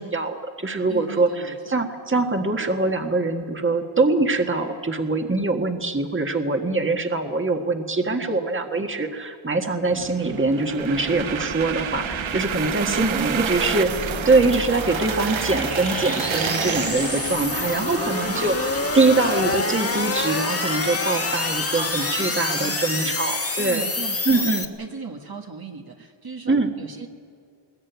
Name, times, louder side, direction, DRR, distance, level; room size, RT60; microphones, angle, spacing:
voice 1, 0.0-23.8 24.3-24.7 26.5-26.7, right 3 dB, 25° right, 4 dB, 1.7 m, -23 dB
voice 2, 0.9-1.9 8.1-8.4 10.9-11.2 12.8-14.5 18.3-18.6 21.7-23.1 23.6-27.1, right 4 dB, 50° right, 2 dB, 1.7 m, -39 dB
sound 1, 9.9-19.6, right 8 dB, 90° right, 0.8 m, -30 dB
sound 2, 10.7-24.7, left 3 dB, 30° left, 1.6 m, -28 dB
21.0 x 21.0 x 9.3 m, 2.3 s
wide cardioid pair, 90°, 45 cm